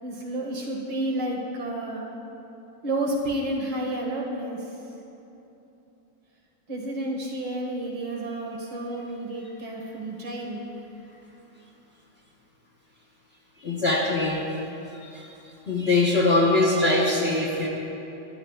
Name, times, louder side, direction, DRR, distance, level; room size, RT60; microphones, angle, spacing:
voice 1, 0.0-2.1 2.8-4.8 6.7-10.7, right 1 dB, 65° right, -2 dB, 2.6 m, -30 dB
voice 2, 13.6-14.5 15.0-15.3 15.7-17.7, left 2 dB, 40° left, -3 dB, 1.2 m, -22 dB
22.0 x 12.0 x 2.4 m, 3.0 s
omnidirectional pair, 2.1 m